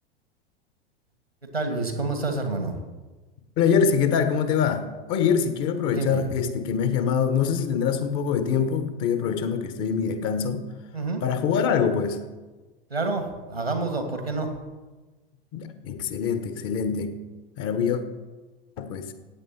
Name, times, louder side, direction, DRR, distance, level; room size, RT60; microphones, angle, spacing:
voice 1, 1.5-2.8 5.8-6.3 10.9-11.2 12.9-14.5, right 3 dB, 85° right, 5 dB, 2.1 m, -28 dB
voice 2, 3.6-10.6 11.2-12.2 15.5-17.2 17.6-18.0 18.8-19.1, left 7 dB, 40° left, 9 dB, 1.4 m, -24 dB
15.0 x 9.0 x 4.4 m, 1.2 s
figure-of-eight pair, 85°, 30 cm